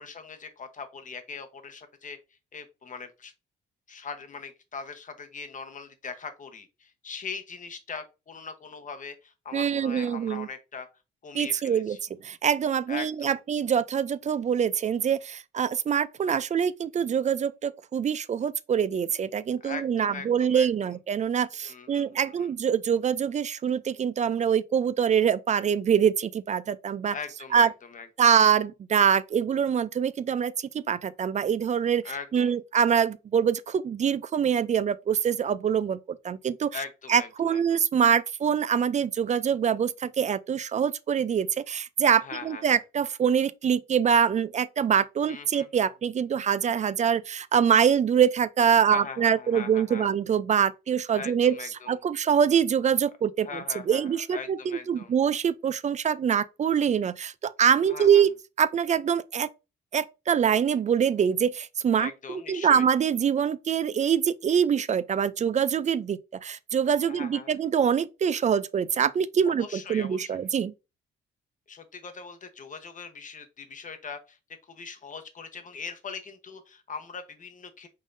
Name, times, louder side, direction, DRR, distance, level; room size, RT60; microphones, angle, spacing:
voice 1, 0.0-2.2 2.5-3.3 3.9-10.9 11.2-12.0 12.9-13.4 19.6-20.9 21.7-22.5 27.1-28.3 32.0-32.5 36.7-37.8 42.2-42.8 45.3-45.7 48.8-50.1 51.1-52.0 53.4-55.2 57.9-58.2 61.9-62.9 67.1-67.6 69.5-70.5 71.7-74.4 74.7-77.9, left 5 dB, 40° left, 1.0 m, -41 dB
voice 2, 9.5-10.5 11.3-12.0 12.2-27.1 27.5-27.7 28.2-32.0 32.3-36.0 36.2-36.7 37.1-51.6 51.9-53.5 53.9-58.3 58.6-59.5 59.9-70.7, right 8 dB, 35° right, 0.4 m, -24 dB
5.4 x 3.6 x 2.6 m
cardioid pair, 90°, 20 cm